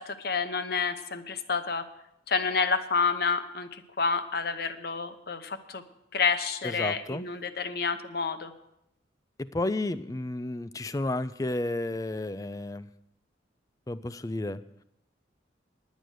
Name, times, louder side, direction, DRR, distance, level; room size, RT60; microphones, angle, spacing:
voice 1, 0.0-1.8 2.3-5.8 6.1-8.5, left 5 dB, 55° left, 10 dB, 0.8 m, -29 dB
voice 2, 6.6-7.2 9.4-12.9 13.9-14.6, left 2 dB, 20° left, 14 dB, 0.4 m, -32 dB
10.5 x 9.3 x 6.4 m, 0.82 s
head